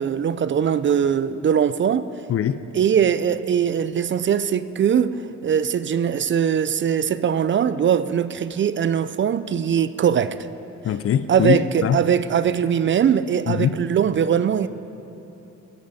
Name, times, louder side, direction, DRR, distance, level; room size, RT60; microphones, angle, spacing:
voice 1, 0.0-2.1 2.7-10.4 11.3-14.7, right 8 dB, 40° right, 0.5 m, -21 dB
voice 2, 10.8-12.0 13.5-13.8, left 9 dB, 50° left, 0.6 m, -22 dB
23.0 x 9.8 x 4.2 m
cardioid pair, 90°, 30 cm